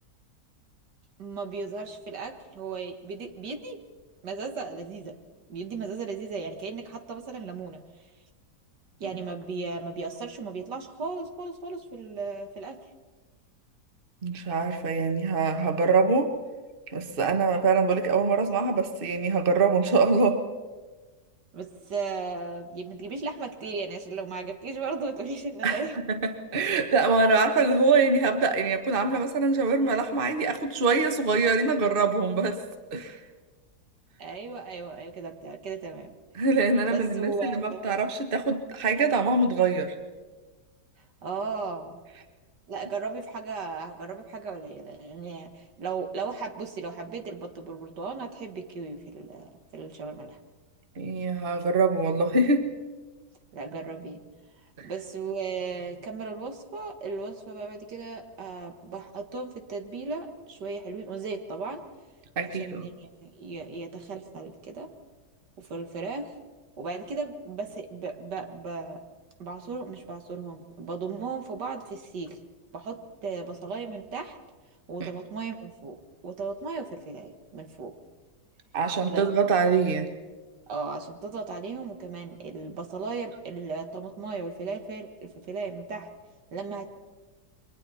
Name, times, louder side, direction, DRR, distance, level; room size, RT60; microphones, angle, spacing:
voice 1, 1.2-3.8 4.2-5.2 5.5-7.8 9.0-12.8 21.5-26.0 34.2-36.1 36.5-36.6 36.9-37.8 41.2-42.0 42.7-50.4 53.5-54.2 54.8-61.9 62.4-64.9 65.6-66.4 66.8-69.0 69.4-72.4 72.7-74.4 74.9-78.0 79.1-79.3 80.7-86.1 86.5-86.9, right 4 dB, 80° right, 5 dB, 2.2 m, -36 dB
voice 2, 14.2-16.3 16.9-20.4 25.6-25.8 26.1-32.6 32.9-33.2 36.3-39.9 51.0-52.7 54.8-54.9 62.4-62.9 75.0-75.1 78.7-80.1, right 4 dB, 35° right, 7 dB, 1.4 m, -24 dB
29.0 x 23.5 x 4.3 m, 1.3 s
omnidirectional pair, 1.8 m